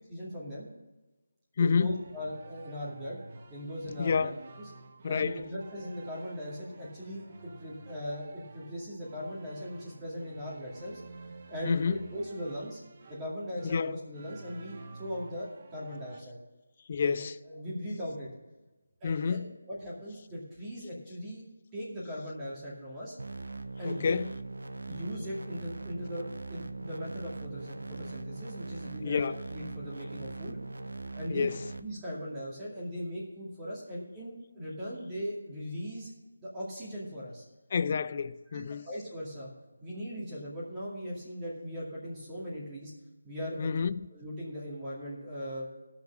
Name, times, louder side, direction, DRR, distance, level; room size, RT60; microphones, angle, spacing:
voice 1, 0.1-0.7 1.6-3.2 3.5-4.3 5.1-11.0 11.5-12.8 13.1-16.4 17.0-18.3 19.0-21.4 21.7-23.1 23.8-24.1 24.9-30.6 31.1-31.5 31.8-36.1 36.4-37.4 38.5-39.5 39.8-42.9 43.2-43.7 44.1-45.7, equal, 15° right, 2.4 m, -39 dB
voice 2, 1.6-2.0 4.0-4.3 5.0-5.4 11.6-12.0 13.6-14.0 16.9-17.4 19.0-19.5 23.8-24.3 29.0-29.4 31.3-31.6 37.7-38.9 43.6-44.0, left 6 dB, 35° left, 0.4 m, -29 dB
sound 1, 1.9-16.2, right 3 dB, 35° right, 1.0 m, -51 dB
sound 2, 23.2-31.8, right 3 dB, 85° right, 0.8 m, -41 dB
14.5 x 6.0 x 6.4 m
figure-of-eight pair, 170°, 0 cm